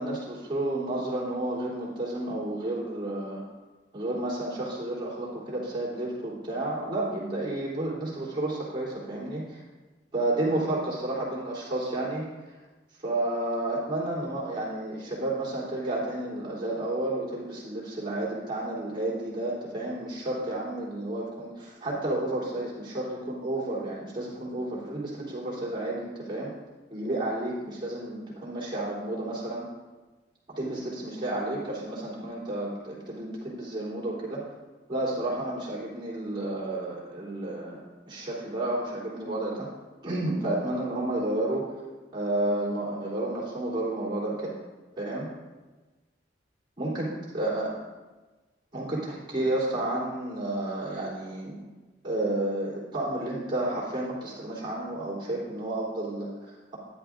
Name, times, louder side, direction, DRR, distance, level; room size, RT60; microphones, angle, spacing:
voice 1, 0.0-3.4 3.9-9.6 10.1-12.5 13.0-26.5 26.9-29.7 30.6-34.4 34.9-39.7 40.0-41.7 42.1-44.5 45.0-45.3 46.8-47.1 47.3-47.7 48.7-51.6 52.0-56.8, right 1 dB, 25° right, -8 dB, 3.3 m, -31 dB
13.5 x 10.0 x 2.6 m, 1.2 s
head